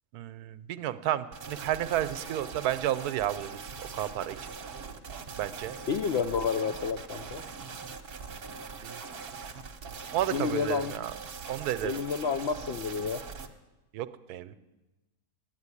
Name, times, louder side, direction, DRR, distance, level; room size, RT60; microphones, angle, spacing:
voice 1, 0.1-3.5 3.9-4.4 5.4-5.8 8.8-9.0 10.1-11.1 11.5-12.0 13.9-14.5, right 12 dB, 80° right, 14 dB, 1.1 m, -31 dB
sound 1, 1.3-13.5, right 5 dB, 45° right, 0.9 m, -42 dB
voice 2, 5.9-7.4 10.3-10.9 11.8-13.2, left 6 dB, 75° left, 8 dB, 0.6 m, -30 dB
9.7 x 9.1 x 9.7 m, 1.1 s
omnidirectional pair, 1.7 m